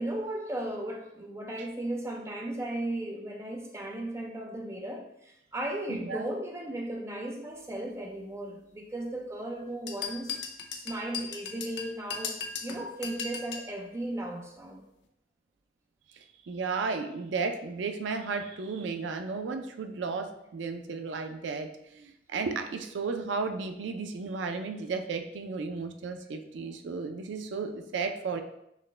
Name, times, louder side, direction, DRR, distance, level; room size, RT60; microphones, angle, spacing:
voice 1, 0.0-10.4 10.7-12.3 12.6-14.8, right 1 dB, 15° right, 0 dB, 0.5 m, -36 dB
sound 1, 9.9-13.7, left 5 dB, 70° left, 0.5 m, -37 dB
voice 2, 16.4-28.4, right 4 dB, 80° right, 7 dB, 0.4 m, -34 dB
6.0 x 2.1 x 3.2 m, 0.79 s
head